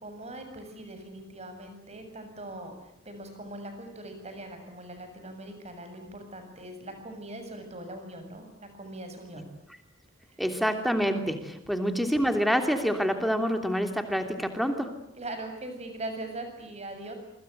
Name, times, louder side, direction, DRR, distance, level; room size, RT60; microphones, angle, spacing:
voice 1, 0.0-9.5 10.3-10.4 15.2-17.1, right 1 dB, 30° right, 6 dB, 7.3 m, -41 dB
voice 2, 10.4-15.0, equal, ahead, 6 dB, 2.9 m, -27 dB
28.0 x 25.0 x 8.1 m, 0.76 s
head